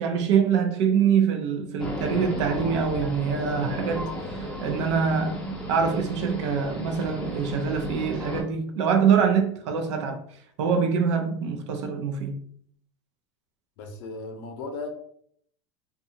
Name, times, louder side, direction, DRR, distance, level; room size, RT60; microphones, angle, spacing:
voice 1, 0.0-5.4 5.7-10.2 10.6-12.4, right 6 dB, 75° right, 0.5 m, -24 dB
sound 1, 1.8-8.4, equal, 5° left, 0.5 m, -34 dB
voice 2, 13.8-14.9, left 3 dB, 60° left, 0.6 m, -36 dB
2.6 x 2.3 x 2.6 m
supercardioid pair, 145°, 15 cm